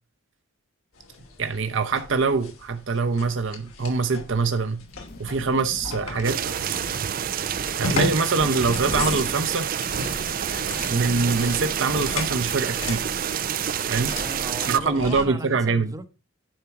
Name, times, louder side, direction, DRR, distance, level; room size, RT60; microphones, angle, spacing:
sound 1, 1.0-15.3, left 2 dB, 80° left, 2.7 m, -35 dB
voice 1, 1.4-4.8 5.2-6.4 7.8-9.7 10.9-13.1 13.9-14.1 14.7-15.9, right 4 dB, 60° right, 0.7 m, -24 dB
sound 2, 4.8-14.7, left 2 dB, 45° left, 0.8 m, -41 dB
sound 3, 6.2-14.8, right 9 dB, 40° right, 0.4 m, -28 dB
voice 2, 14.1-16.1, right 2 dB, 15° right, 0.8 m, -37 dB
10.5 x 4.4 x 5.8 m
head